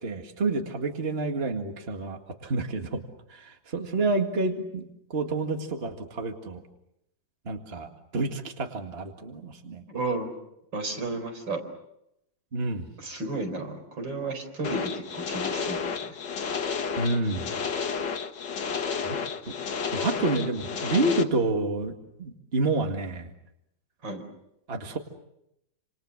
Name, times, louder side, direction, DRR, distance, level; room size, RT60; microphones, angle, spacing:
voice 1, 0.0-3.0 3.3-6.6 7.5-9.8 12.5-12.9 17.0-17.5 19.0-19.2 19.4-19.5 19.9-23.3 24.7-25.0, right 2 dB, 35° right, 4 dB, 2.2 m, -29 dB
voice 2, 9.9-10.3 10.7-11.6 13.0-16.2 24.0-24.2, right 2 dB, 85° right, 6 dB, 5.2 m, -33 dB
sound 1, 14.6-21.2, left 6 dB, 75° left, 2.3 m, -31 dB
29.0 x 27.5 x 6.6 m, 0.81 s
omnidirectional pair, 2.0 m